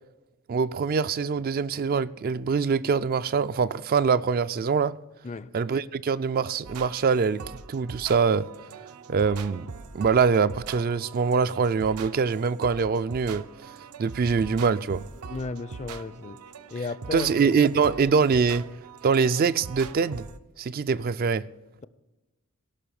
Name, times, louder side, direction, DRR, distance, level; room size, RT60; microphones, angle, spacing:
voice 1, 0.5-5.0 5.5-7.4 7.7-8.5 9.1-9.7 9.9-13.4 14.0-15.0 17.1-18.7 19.0-20.3 20.6-21.4, right 5 dB, 40° right, 0.3 m, -24 dB
sound 1, 6.6-20.4, right 5 dB, 80° right, 0.6 m, -42 dB
voice 2, 15.3-16.4 16.7-17.5, left 3 dB, 30° left, 0.4 m, -34 dB
17.0 x 5.8 x 6.9 m
head